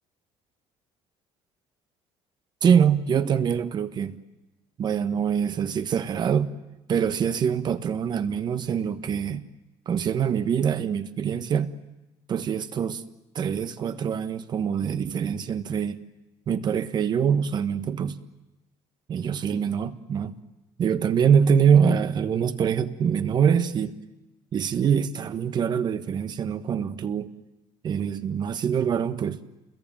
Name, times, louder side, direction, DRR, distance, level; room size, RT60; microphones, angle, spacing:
voice 1, 2.6-4.2 4.8-6.5 6.9-9.4 9.9-11.7 12.3-13.0 13.3-16.0 16.5-18.2 19.1-20.3 20.8-23.9 24.5-27.3 27.8-29.4, right 7 dB, 40° right, 1.3 m, -24 dB
29.0 x 21.5 x 9.0 m
cardioid pair, 145°, 12 cm